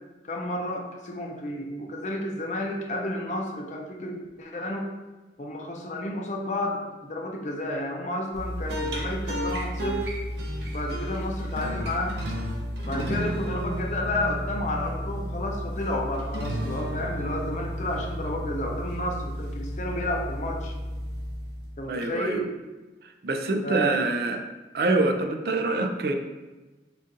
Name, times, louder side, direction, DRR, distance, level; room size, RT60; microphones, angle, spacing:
voice 1, 0.2-4.9 5.4-10.1 10.6-12.2 12.8-20.7 21.8-22.5 23.6-24.0, left 1 dB, 40° left, 1 dB, 0.5 m, -31 dB
sound 1, 8.3-21.9, equal, 85° right, 0.8 m, -32 dB
voice 2, 21.9-22.5 23.0-24.4 24.7-26.1, right 2 dB, 60° right, 5 dB, 0.4 m, -25 dB
4.0 x 2.5 x 3.7 m, 1.2 s
head